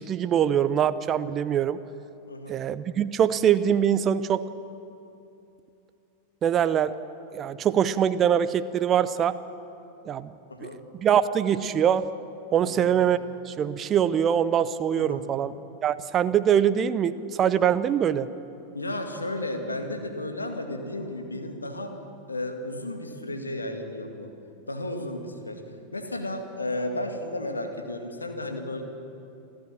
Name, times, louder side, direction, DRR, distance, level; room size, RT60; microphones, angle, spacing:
voice 1, 0.0-1.8 2.5-4.4 6.4-6.9 7.3-9.3 10.1-10.3 10.6-10.7 11.0-12.0 12.5-13.2 13.5-15.5 15.8-18.3, right 9 dB, 30° right, 14 dB, 0.7 m, -23 dB
voice 2, 2.3-2.6 10.5-10.8 12.6-13.0 14.9-15.2 18.7-21.9 22.3-24.3 24.7-25.6 25.9-28.8, left 1 dB, 80° left, 5 dB, 2.2 m, -33 dB
28.5 x 14.0 x 7.4 m, 2.7 s
figure-of-eight pair, 90°, 0 cm